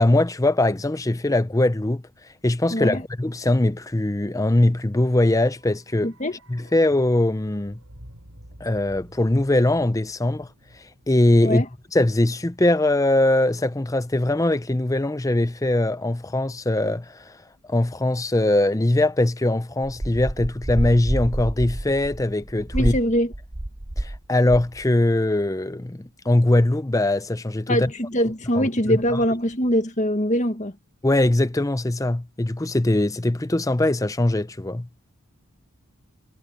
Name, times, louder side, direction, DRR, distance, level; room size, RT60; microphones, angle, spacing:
voice 1, 0.0-2.0 2.4-6.1 6.5-7.8 8.6-10.5 10.7-11.6 11.9-17.4 17.7-22.9 24.0-27.9 28.6-29.2 31.0-34.9, left 1 dB, 15° left, 0.6 m, -21 dB
voice 2, 2.7-3.0 6.0-6.4 11.4-11.7 22.7-23.3 27.7-30.7, equal, 35° left, 1.8 m, -23 dB
sound 1, 5.3-13.3 13.6-13.7, equal, 70° right, 7.1 m, -50 dB
sound 2, 20.0-24.2 24.5-24.8, right 1 dB, 20° right, 0.7 m, -28 dB
head